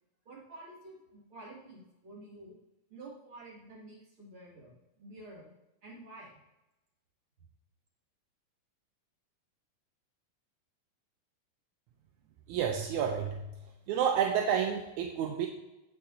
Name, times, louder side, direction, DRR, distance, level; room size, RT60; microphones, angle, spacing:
voice 1, 0.2-2.5 2.9-5.5 5.8-6.4, right 2 dB, 40° right, -5 dB, 3.4 m, -50 dB
voice 2, 12.5-13.5 13.9-15.5, right 8 dB, 75° right, 3 dB, 1.9 m, -30 dB
17.0 x 6.3 x 2.8 m, 0.98 s
omnidirectional pair, 3.9 m